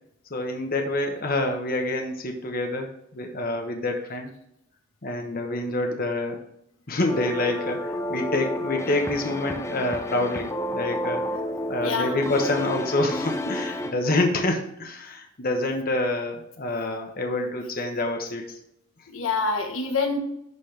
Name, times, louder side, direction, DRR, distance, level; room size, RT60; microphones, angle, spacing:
voice 1, 0.3-2.9 3.1-4.3 5.0-6.4 6.9-11.2 11.7-18.4, left 2 dB, 45° left, 3 dB, 1.2 m, -27 dB
sound 1, 7.1-13.9, left 1 dB, 15° left, 0.6 m, -30 dB
voice 2, 11.8-12.3 19.1-20.2, left 4 dB, 85° left, 4 dB, 1.2 m, -26 dB
12.0 x 4.3 x 3.4 m, 0.78 s
head